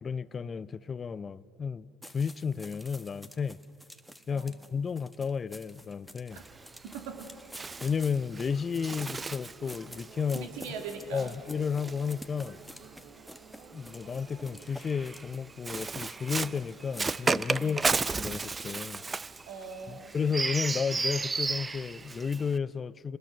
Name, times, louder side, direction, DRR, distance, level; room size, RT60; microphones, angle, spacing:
voice 1, 0.0-3.6 4.3-6.4 7.8-10.5 11.1-12.6 13.7-19.0 19.9-23.2, left 6 dB, 30° left, 18 dB, 0.6 m, -33 dB
sound 1, 2.0-17.8, equal, ahead, 1.4 m, -50 dB
Bird, 6.3-12.9 13.8-22.6, right 4 dB, 25° right, 0.5 m, -34 dB
voice 2, 6.9-7.3 10.3-11.3 17.6-17.9 19.5-20.2, right 5 dB, 70° right, 4 dB, 2.8 m, -41 dB
sound 2, 9.6-14.7, right 5 dB, 55° right, 2.9 m, -54 dB
27.5 x 20.5 x 6.6 m, 2.5 s
hypercardioid pair, 70°, 0 cm